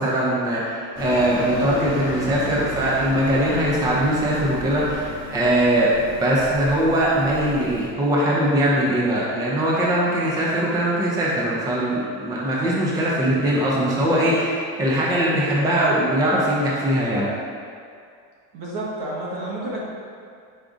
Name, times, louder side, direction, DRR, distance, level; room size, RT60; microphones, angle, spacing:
voice 1, 0.0-17.3, right 1 dB, 10° right, -5 dB, 0.4 m, -21 dB
sound 1, 0.9-7.9, left 2 dB, 45° left, 0.8 m, -34 dB
voice 2, 18.5-19.8, right 1 dB, 75° right, -5 dB, 1.2 m, -30 dB
4.9 x 3.5 x 2.5 m, 2.3 s
cardioid pair, 150°, 37 cm